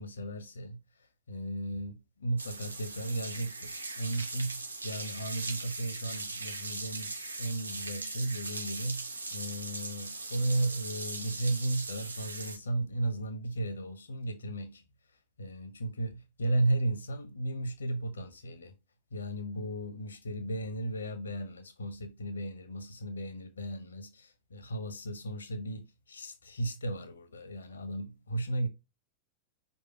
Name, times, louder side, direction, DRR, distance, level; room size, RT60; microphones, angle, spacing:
voice 1, 0.0-14.8 15.1-18.7 19.1-28.7, right 1 dB, 75° left, 1.2 m, -35 dB
sound 1, 2.4-12.6, right 3 dB, 80° right, 0.8 m, -39 dB
5.2 x 4.3 x 5.0 m
figure-of-eight pair, 90°, 0 cm